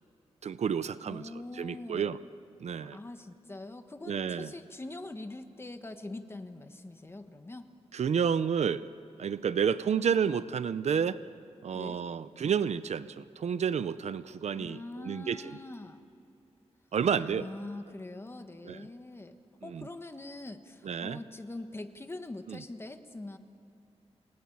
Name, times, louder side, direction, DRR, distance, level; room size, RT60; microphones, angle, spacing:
voice 1, 0.4-1.3 1.6-2.2 2.6-3.0 4.1-4.5 7.9-8.8 9.2-11.2 11.6-15.6 16.9-17.5 18.6-18.9 19.6-19.9 20.8-21.2 22.5-22.6, right 7 dB, 75° right, 15 dB, 0.7 m, -30 dB
voice 2, 1.1-2.2 2.9-7.7 11.7-12.0 14.5-16.0 17.2-19.4 19.6-23.4, left 2 dB, 20° left, 8 dB, 1.3 m, -43 dB
29.0 x 20.0 x 8.6 m, 2.7 s
wide cardioid pair, 130°, 11 cm